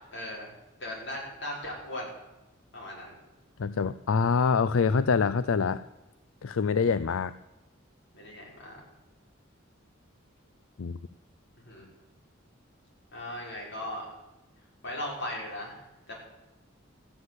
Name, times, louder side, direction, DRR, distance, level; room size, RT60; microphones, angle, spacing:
voice 1, 0.1-0.5 0.8-2.1 2.7-3.1 8.1-8.7 11.6-11.9 13.1-14.1 14.8-15.8 16.1-16.2, left 1 dB, 60° left, -3 dB, 6.0 m, -37 dB
voice 2, 3.6-5.8 6.4-7.4 10.8-11.0, left 5 dB, 80° left, 15 dB, 0.5 m, -25 dB
14.5 x 9.6 x 8.1 m, 1.0 s
head